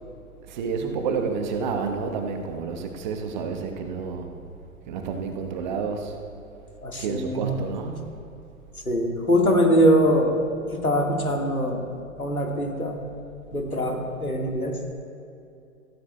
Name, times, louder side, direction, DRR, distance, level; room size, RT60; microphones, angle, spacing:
voice 1, 0.5-4.4 4.9-6.1 7.0-8.1, right 5 dB, 35° right, 5 dB, 1.0 m, -29 dB
voice 2, 6.8-7.6 8.9-10.4 10.7-11.9 12.2-13.0 13.5-14.8, equal, 90° left, 2 dB, 1.8 m, -22 dB
16.5 x 15.0 x 2.2 m, 2.6 s
figure-of-eight pair, 115°, 42 cm